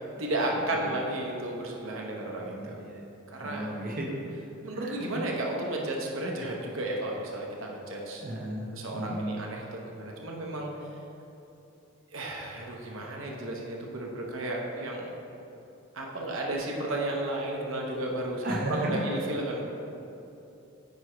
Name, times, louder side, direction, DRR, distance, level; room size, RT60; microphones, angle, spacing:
voice 1, 0.0-2.7 3.4-3.7 4.6-8.2 8.7-10.7 12.1-15.2 15.9-19.6, right 1 dB, 85° right, -1 dB, 0.9 m, -33 dB
voice 2, 2.4-3.0 3.4-4.4 4.7-5.2 8.2-9.4 18.4-19.0, right 1 dB, 45° right, -2 dB, 0.8 m, -35 dB
9.1 x 3.1 x 4.9 m, 2.8 s
head